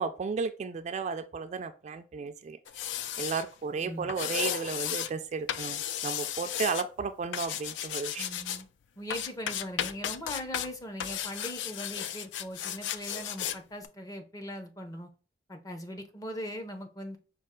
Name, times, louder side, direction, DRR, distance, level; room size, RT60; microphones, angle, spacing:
voice 1, 0.0-2.6 3.2-8.3, right 5 dB, 40° right, 0.3 m, -34 dB
sound 1, 2.7-3.4 4.1-5.1 5.5-6.8 7.3-8.6 9.1-10.7 11.0-13.6 13.8-13.9, left 10 dB, 80° left, 0.3 m, -34 dB
voice 2, 3.8-4.1 8.2-8.7 9.0-15.1 15.5-17.2, equal, 20° left, 0.6 m, -40 dB
5.3 x 2.4 x 3.6 m
head